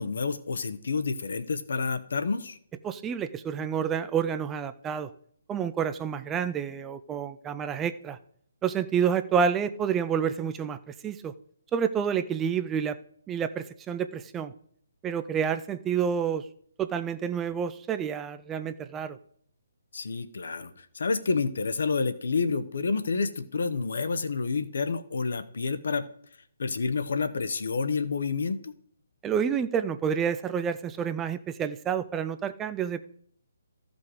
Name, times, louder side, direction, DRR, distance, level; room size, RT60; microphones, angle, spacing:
voice 1, 0.0-2.6 19.9-26.0 26.6-28.7, left 4 dB, 60° left, 11 dB, 0.8 m, -29 dB
voice 2, 2.8-5.1 5.5-8.2 8.6-11.3 11.7-13.0 13.3-14.5 15.0-16.4 16.8-19.2 29.2-33.1, right 7 dB, 15° right, 11 dB, 0.4 m, -29 dB
14.0 x 5.2 x 4.9 m, 0.64 s
figure-of-eight pair, 140°, 0 cm